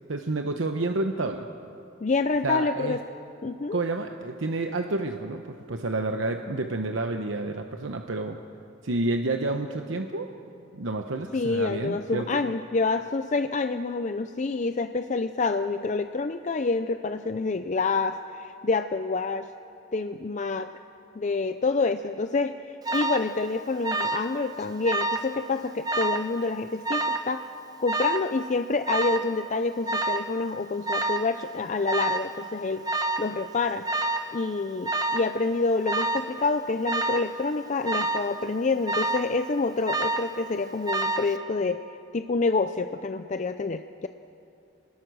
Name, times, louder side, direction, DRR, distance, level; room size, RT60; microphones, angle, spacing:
voice 1, 0.1-1.5 2.4-3.0 3.7-8.4 8.8-10.3 10.7-12.4, right 2 dB, 80° right, 5 dB, 0.9 m, -29 dB
voice 2, 2.0-3.0 3.4-3.8 11.3-19.5 19.9-20.7 21.2-22.6 22.9-27.4 27.8-32.8 33.2-33.9 34.3-41.8 42.1-44.1, left 3 dB, 35° left, 9 dB, 0.5 m, -27 dB
Alarm, 22.8-23.3 23.8-24.3 24.6-25.3 25.8-26.3 26.8-27.3 27.9-28.3 28.9-29.3 29.9-30.3 30.9-31.3 31.9-32.3 32.9-33.3 33.8-34.3 34.8-35.3 35.8-36.3 36.8-37.3 37.8-38.3 38.9-39.3 39.9-40.3 40.9-41.3, right 2 dB, 20° right, 0.9 m, -27 dB
26.0 x 20.0 x 6.3 m, 2.7 s
head